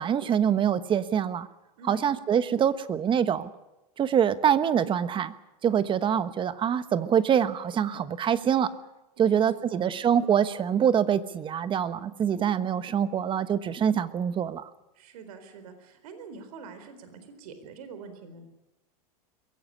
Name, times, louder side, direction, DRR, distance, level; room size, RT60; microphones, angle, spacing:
voice 1, 0.0-1.5 1.9-3.5 4.0-5.3 5.6-8.7 9.2-14.7, right 8 dB, 25° right, 14 dB, 1.2 m, -25 dB
voice 2, 1.8-2.2 9.2-9.9 14.9-18.5, right 4 dB, 70° right, 9 dB, 4.2 m, -45 dB
22.5 x 17.0 x 9.9 m, 0.98 s
hypercardioid pair, 125°, 20 cm